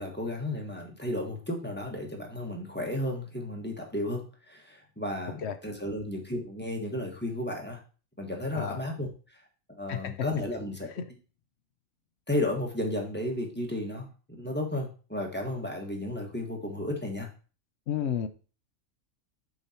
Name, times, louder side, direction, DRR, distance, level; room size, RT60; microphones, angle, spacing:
voice 1, 0.0-7.8 8.2-9.4 9.8-10.9 12.3-17.3, left 1 dB, 5° left, 0 dB, 1.4 m, -33 dB
voice 2, 17.9-18.3, left 9 dB, 60° left, 10 dB, 0.8 m, -31 dB
6.8 x 5.7 x 4.3 m, 0.36 s
omnidirectional pair, 1.6 m